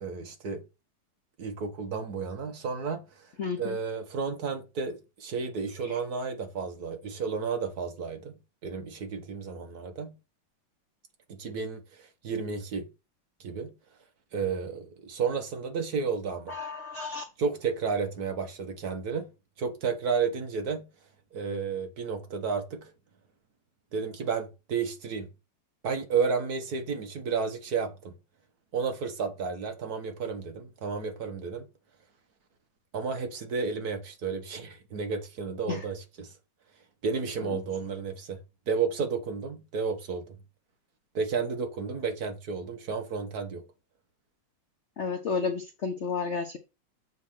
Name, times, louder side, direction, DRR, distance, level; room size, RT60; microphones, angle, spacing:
voice 1, 0.0-0.6 1.4-3.0 3.6-10.2 11.3-12.9 13.4-13.7 14.3-16.6 17.4-19.3 19.6-20.9 21.3-22.9 23.9-25.3 25.8-28.1 28.7-31.7 32.9-36.3 37.0-38.4 38.7-40.3 41.1-43.6, right 5 dB, 50° right, 1.4 m, -32 dB
voice 2, 3.4-3.8 5.9-6.0 16.5-17.2 35.7-35.8 37.4-37.6 45.0-46.6, left 5 dB, 80° left, 0.6 m, -32 dB
7.5 x 3.3 x 5.8 m
omnidirectional pair, 2.3 m